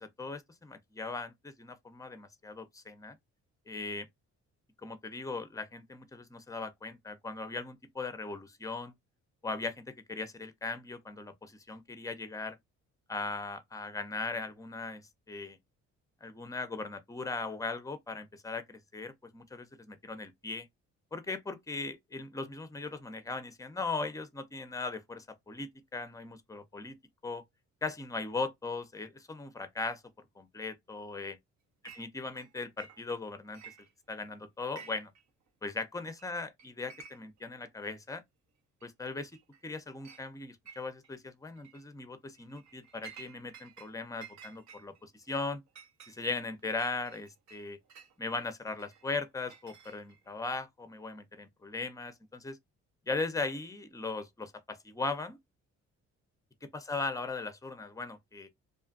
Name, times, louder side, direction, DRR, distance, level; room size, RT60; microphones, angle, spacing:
voice 1, 0.0-3.2 3.7-4.1 4.8-8.9 9.4-12.6 13.1-15.6 16.2-20.7 21.1-27.0 27.2-27.4 27.8-30.0 30.4-31.4 31.8-33.7 34.1-35.1 35.6-38.2 38.8-39.3 39.6-45.6 46.1-47.8 48.2-52.6 53.1-55.4 56.6-58.5, left 3 dB, 10° left, 0.5 m, -38 dB
Chink clink, 31.8-32.1 32.3-33.2 33.5-34.3 34.6-35.2 35.5-35.6 36.2-36.3 36.6-37.4 37.8-37.9 38.8-38.9 39.3-39.7 40.0-40.2 40.7-41.1 41.6-41.8 42.3-43.9 44.2-48.1 48.8-50.3, right 7 dB, 65° right, 0.7 m, -53 dB
2.6 x 2.4 x 2.4 m
cardioid pair, 90°, 30 cm